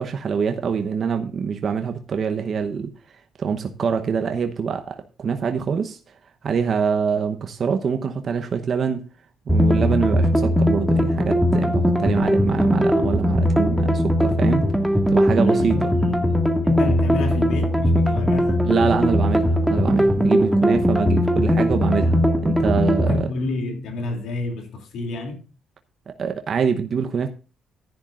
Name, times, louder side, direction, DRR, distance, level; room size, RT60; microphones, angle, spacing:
voice 1, 0.0-2.9 3.4-6.0 6.4-9.1 9.5-14.6 15.1-15.9 18.7-23.3 26.1-27.3, right 6 dB, 50° right, 0.9 m, -24 dB
sound 1, 9.5-23.2, equal, ahead, 1.9 m, -19 dB
voice 2, 15.4-18.7 20.8-20.9 23.0-25.4, left 2 dB, 80° left, 2.8 m, -30 dB
14.5 x 10.5 x 2.5 m
cardioid pair, 90°, 0 cm